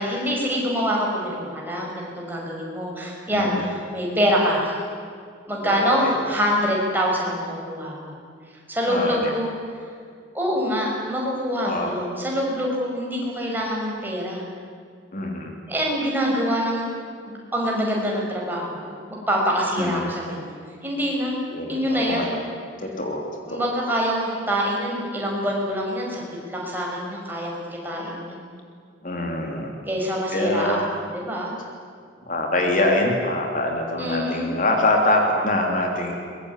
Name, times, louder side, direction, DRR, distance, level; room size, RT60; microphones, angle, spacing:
voice 1, 0.0-4.7 5.5-8.2 8.7-9.5 10.3-14.4 15.7-16.9 17.2-20.5 20.8-21.4 21.7-22.3 23.5-27.5 27.8-28.4 29.9-31.5 34.0-34.5, equal, 10° right, -2 dB, 6.3 m, -25 dB
voice 2, 3.3-3.7 5.6-6.1 8.9-9.3 11.6-12.0 15.1-15.5 19.8-20.1 21.5-22.3 22.8-23.2 23.5-23.7 29.0-29.7 30.3-30.8 32.3-36.1, left 1 dB, 45° left, 1 dB, 3.3 m, -24 dB
23.5 x 22.5 x 9.9 m, 2.2 s
head